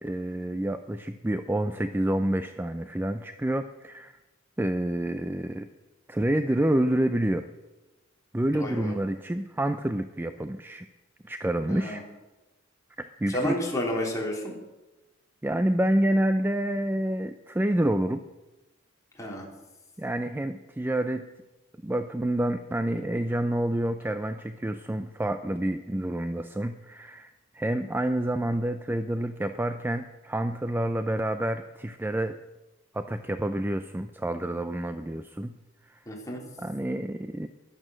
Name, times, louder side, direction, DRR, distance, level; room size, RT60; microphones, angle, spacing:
voice 1, 0.0-4.2 4.6-5.7 6.1-7.5 8.3-10.9 11.2-12.0 13.0-13.6 15.4-18.2 20.0-21.2 21.8-32.4 32.9-35.5 35.9-36.0 36.6-37.5, right 1 dB, 10° right, 9 dB, 0.4 m, -28 dB
voice 2, 8.5-8.9 11.7-12.0 13.3-14.5 19.2-19.5 36.1-36.4, left 1 dB, 15° left, -2 dB, 3.3 m, -31 dB
14.0 x 11.0 x 6.2 m, 1.1 s
head